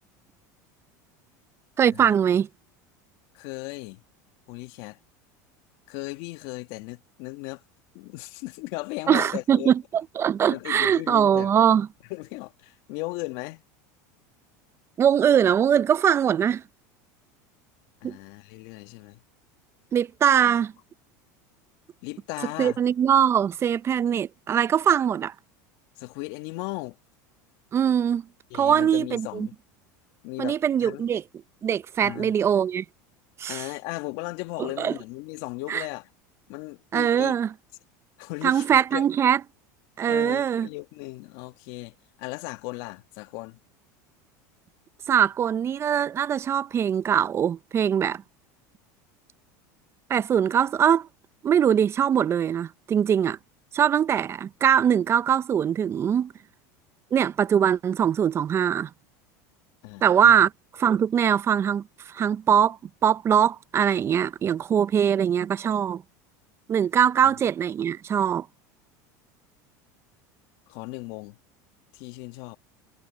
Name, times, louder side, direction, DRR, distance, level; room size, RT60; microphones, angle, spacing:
voice 1, 1.8-2.5 9.1-9.8 10.2-11.9 15.0-16.6 18.0-18.2 19.9-20.7 22.6-25.3 27.7-28.2 28.5-29.5 30.4-31.2 31.6-32.8 33.4-33.6 34.8-34.9 35.7-35.8 36.9-37.5 38.4-39.4 40.0-40.7 45.1-48.2 50.1-51.1 51.4-53.4 53.7-56.3 57.1-58.9 60.0-60.5 60.8-61.8 62.1-66.0 66.7-68.5, right 8 dB, 30° right, 0.5 m, -22 dB
voice 2, 3.3-4.0 4.5-5.0 5.9-7.6 7.9-9.7 10.5-11.5 12.1-13.6 18.0-19.2 20.4-20.6 22.0-22.8 26.0-27.0 28.5-29.6 30.2-31.1 32.0-32.4 33.5-36.1 36.5-37.4 38.2-39.0 40.0-43.6 59.8-60.4 67.2-67.3 70.7-71.4 71.9-72.6, left 22 dB, 65° left, 1.5 m, -36 dB
supercardioid pair, 115°, 9 cm